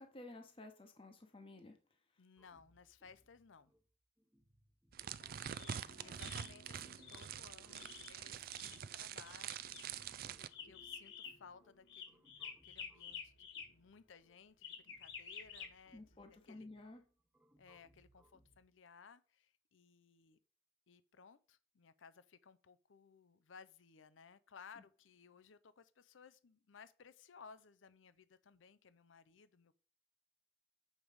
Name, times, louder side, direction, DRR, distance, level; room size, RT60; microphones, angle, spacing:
voice 1, 0.0-1.8 6.0-6.4 15.9-17.0, left 2 dB, 30° left, 0.9 m, -54 dB
voice 2, 2.2-3.7 5.4-16.7 17.6-20.4 20.9-29.7, left 5 dB, 85° left, 0.6 m, -61 dB
sound 1, 2.4-18.6, right 1 dB, 5° right, 0.9 m, -73 dB
sound 2, 4.9-10.5, right 9 dB, 50° right, 0.3 m, -46 dB
sound 3, 5.2-13.6 14.6-15.7, left 6 dB, 65° left, 1.9 m, -52 dB
7.4 x 4.7 x 5.1 m
head